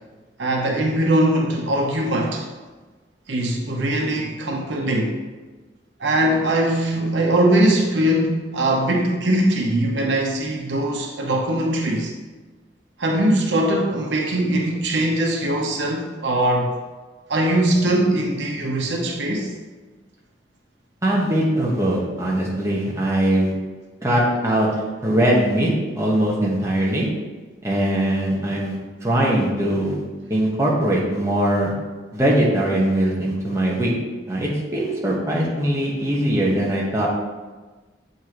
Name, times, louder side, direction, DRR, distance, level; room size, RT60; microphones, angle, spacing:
voice 1, 0.4-2.5 3.3-5.2 6.0-12.1 13.0-16.7 17.3-19.5, right 1 dB, 80° right, 1 dB, 1.0 m, -21 dB
voice 2, 21.0-23.5 24.0-24.7 25.0-25.7 26.0-27.1 27.6-30.0 30.3-31.7 32.1-33.9 34.3-37.1, right 1 dB, 15° right, -4 dB, 1.2 m, -21 dB
8.1 x 5.5 x 3.0 m, 1.3 s
head